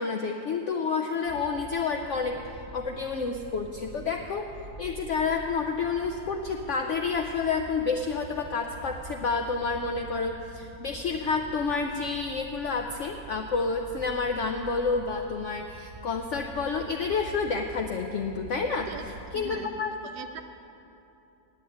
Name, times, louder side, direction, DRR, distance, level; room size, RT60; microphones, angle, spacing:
voice 1, 0.0-2.4 2.7-4.5 4.8-18.9 19.3-19.9, left 4 dB, 75° left, 4 dB, 0.7 m, -29 dB
sound 1, 1.2-19.6, right 3 dB, 25° right, 0.6 m, -46 dB
voice 2, 19.3-19.7 20.0-20.4, right 6 dB, 70° right, 7 dB, 1.2 m, -40 dB
9.5 x 7.8 x 8.9 m, 2.9 s
omnidirectional pair, 1.9 m